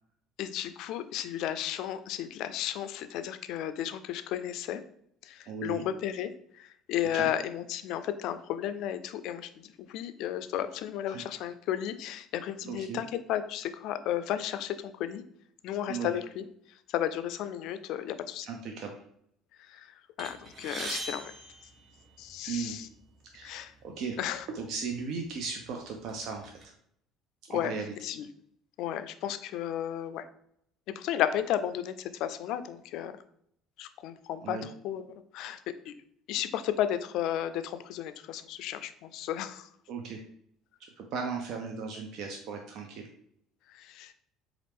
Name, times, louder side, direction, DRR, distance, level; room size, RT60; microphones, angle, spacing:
voice 1, 0.4-4.8 5.2-15.2 15.6-16.4 16.9-18.5 19.6-21.3 22.2-22.9 23.4-23.7 24.2-24.5 27.5-27.7 28.0-28.3 28.8-30.3 31.0-33.1 33.8-35.1 35.3-35.6 35.9-36.0 36.3-39.7 43.7-44.1, left 11 dB, 70° left, 11 dB, 0.3 m, -33 dB
voice 2, 5.5-5.8 7.0-7.3 11.1-11.2 12.6-13.0 15.9-16.1 18.4-18.9 22.4-22.8 23.3-24.2 24.5-26.7 27.5-27.9 34.4-34.7 39.9-40.2 41.0-43.1, right 5 dB, 65° right, 2 dB, 0.5 m, -37 dB
sound 1, 20.2-22.5 23.4-23.5 23.8-24.0 24.8-25.0 25.5-26.6, right 2 dB, 40° right, 0.9 m, -41 dB
4.1 x 2.4 x 3.4 m, 0.69 s
supercardioid pair, 90°, 0 cm